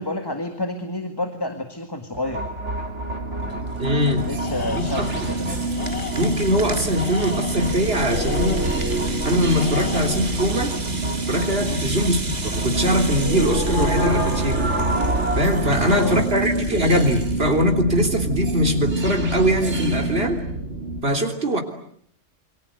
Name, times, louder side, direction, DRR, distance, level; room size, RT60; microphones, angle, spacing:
voice 1, 0.0-2.4 4.1-5.5 11.6-11.8 15.6-16.2, left 1 dB, 20° left, 6 dB, 1.9 m, -29 dB
sound 1, 2.1-21.0, right 2 dB, 65° right, 3.5 m, -26 dB
Rattle (instrument), 3.5-17.7, right 2 dB, 35° right, 2.0 m, -36 dB
voice 2, 3.8-4.3 4.7-5.3 6.2-8.7 9.3-10.8 11.3-14.7 15.4-20.4 21.0-21.6, equal, 50° right, 4 dB, 3.7 m, -22 dB
Tools, 4.4-5.3 5.7-6.6 6.9-8.9 9.5-10.5, left 8 dB, 60° left, 2.2 m, -36 dB
28.0 x 24.5 x 8.0 m, 0.66 s
omnidirectional pair, 1.3 m